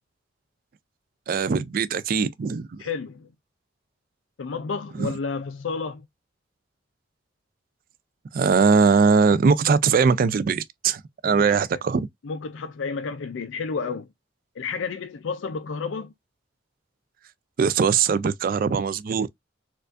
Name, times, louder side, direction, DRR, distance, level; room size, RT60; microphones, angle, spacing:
voice 1, 1.3-2.8 5.0-5.1 8.3-12.1 17.6-19.3, right 5 dB, 50° right, 0.3 m, -21 dB
voice 2, 2.8-3.3 4.4-6.1 11.2-11.8 12.2-14.1 14.6-16.1, left 5 dB, 85° left, 0.4 m, -31 dB
4.4 x 2.4 x 2.5 m
head